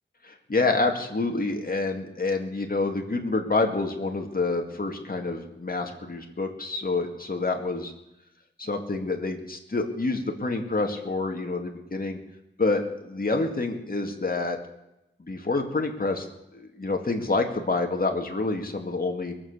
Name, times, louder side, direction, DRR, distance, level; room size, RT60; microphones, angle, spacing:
voice 1, 0.2-7.9 8.6-12.2 12.6-14.6 15.2-16.3 16.5-19.3, left 3 dB, 45° left, 3 dB, 2.2 m, -27 dB
22.5 x 7.8 x 6.7 m, 0.87 s
wide cardioid pair, 60°, 20 cm